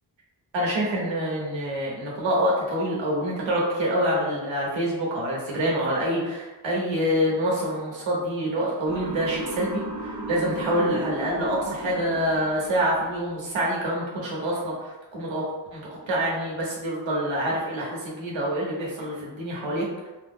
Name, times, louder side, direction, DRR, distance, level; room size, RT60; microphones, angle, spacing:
voice 1, 0.5-15.4 15.7-20.1, equal, 85° right, -4 dB, 1.0 m, -26 dB
Motor vehicle (road) / Siren, 8.9-13.0, right 2 dB, 60° right, 0.7 m, -36 dB
3.0 x 2.0 x 3.6 m, 1.1 s
wide cardioid pair, 130°, 44 cm